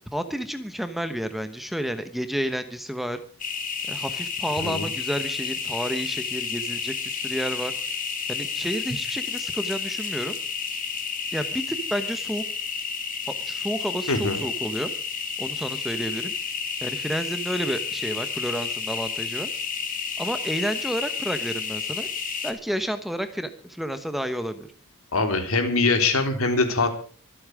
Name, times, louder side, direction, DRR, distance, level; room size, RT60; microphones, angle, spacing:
voice 1, 0.1-3.2 3.9-7.7 8.3-10.4 11.3-12.4 13.4-14.9 15.4-16.3 16.8-19.5 20.2-22.1 22.4-24.7, equal, ahead, 9 dB, 1.0 m, -30 dB
sound 1, 3.4-22.5, left 5 dB, 40° left, 2.8 m, -31 dB
voice 2, 14.1-14.4 25.1-26.9, left 3 dB, 65° left, 6 dB, 3.6 m, -23 dB
25.0 x 8.8 x 4.9 m, 0.42 s
head